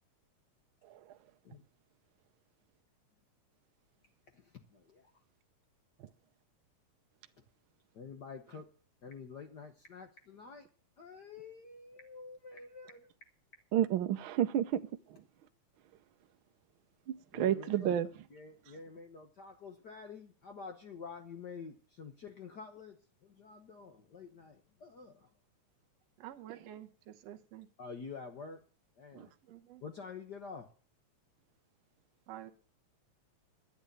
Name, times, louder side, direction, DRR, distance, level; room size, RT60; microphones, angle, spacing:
voice 1, 4.7-5.1 7.9-8.7 9.0-10.7 11.0-13.1 17.3-17.9 18.3-23.0 23.2-25.3 27.8-28.6 29.0-29.3 29.8-30.7, left 5 dB, 65° left, 1.0 m, -48 dB
voice 2, 13.7-14.8 17.1-18.1 29.1-29.3, right 10 dB, 85° right, 1.1 m, -30 dB
voice 3, 26.2-27.7 29.4-29.8 32.3-32.5, right 12 dB, 65° right, 2.0 m, -49 dB
11.0 x 8.5 x 9.0 m
omnidirectional pair, 3.4 m